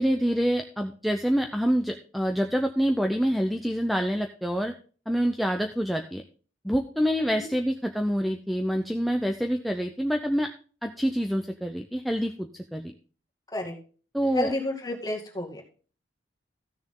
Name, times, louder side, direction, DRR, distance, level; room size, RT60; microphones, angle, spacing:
voice 1, 0.0-4.7 5.1-6.2 6.6-10.5 10.8-12.9 14.1-14.5, equal, ahead, 4 dB, 0.6 m, -26 dB
voice 2, 14.3-15.6, left 1 dB, 20° left, 1 dB, 2.1 m, -31 dB
14.5 x 6.8 x 3.8 m, 0.40 s
head